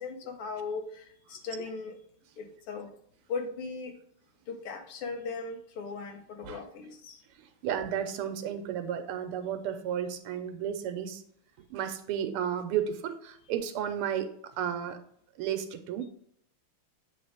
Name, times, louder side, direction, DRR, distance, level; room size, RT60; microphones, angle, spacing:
voice 1, 0.0-2.0 2.4-2.9 3.3-4.0 4.5-7.2, left 4 dB, 80° left, 6 dB, 1.9 m, -38 dB
voice 2, 7.4-11.2 11.7-14.3 14.6-15.0 15.4-16.1, right 9 dB, 85° right, 8 dB, 1.7 m, -33 dB
8.4 x 3.1 x 4.8 m, 0.67 s
omnidirectional pair, 2.4 m